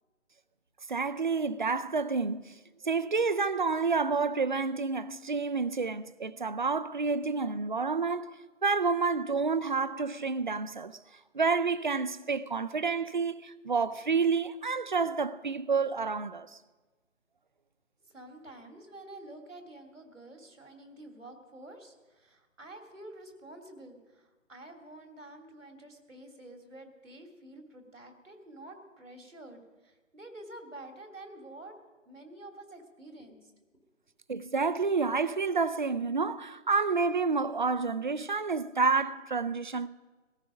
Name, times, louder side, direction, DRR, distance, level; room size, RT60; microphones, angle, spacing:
voice 1, 0.9-2.5 2.8-8.3 8.6-11.0 11.3-16.5 34.3-39.9, right 4 dB, 40° right, 0.5 m, -29 dB
voice 2, 18.0-31.8 32.0-33.5, right 1 dB, 80° right, 3.2 m, -49 dB
17.0 x 15.0 x 5.2 m
figure-of-eight pair, 155°, 38 cm